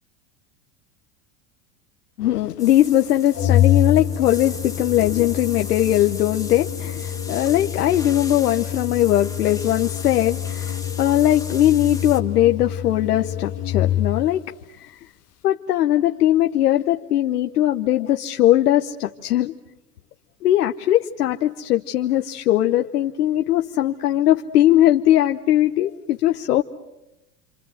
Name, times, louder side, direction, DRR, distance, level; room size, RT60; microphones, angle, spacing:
voice 1, 2.2-14.4 14.7-14.9 15.4-19.5 20.4-26.6, left 13 dB, 90° left, 1.0 m, -20 dB
sound 1, 2.6-12.2, left 3 dB, 5° left, 1.9 m, -38 dB
Organ, 3.3-14.4, left 11 dB, 35° left, 1.2 m, -26 dB
28.5 x 25.0 x 7.8 m
hypercardioid pair, 105°, 45 cm